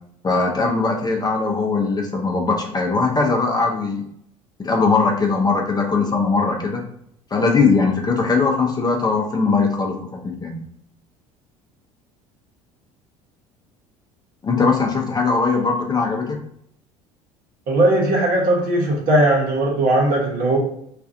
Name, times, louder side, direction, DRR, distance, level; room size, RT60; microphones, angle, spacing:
voice 1, 0.2-4.0 4.6-6.9 7.3-10.0 10.2-10.6 14.4-16.4, left 4 dB, 20° left, 1 dB, 0.6 m, -20 dB
voice 2, 17.7-20.6, right 1 dB, 50° right, -1 dB, 1.0 m, -18 dB
2.4 x 2.4 x 2.5 m, 0.70 s
hypercardioid pair, 65°, 18 cm